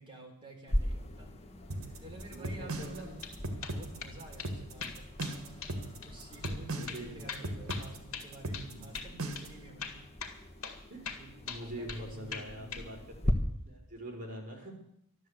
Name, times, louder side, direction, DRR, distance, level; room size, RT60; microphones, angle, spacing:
voice 1, 0.0-1.4 2.0-3.2 3.4-5.4 6.0-10.5 11.6-13.1, right 2 dB, 20° right, 0 dB, 4.0 m, -51 dB
sound 1, 0.7-13.3, equal, 30° left, 1.3 m, -40 dB
sound 2, 1.7-9.6, right 2 dB, 70° right, 1.8 m, -38 dB
voice 2, 2.3-3.2 6.7-7.8 8.5-8.9 9.6-9.7 10.9-13.3 13.6-14.8, right 1 dB, 40° right, 0 dB, 5.0 m, -45 dB
sound 3, 3.0-3.4 3.6-4.1 4.4-4.5 4.8-5.4 5.6-5.8 6.0-6.1 6.4-6.6 6.9-8.7 8.9-9.1 9.4-9.5 9.8-10.8 11.1-12.0 12.3-12.9, left 6 dB, 60° left, 2.3 m, -41 dB
12.5 x 12.5 x 8.1 m, 0.72 s
head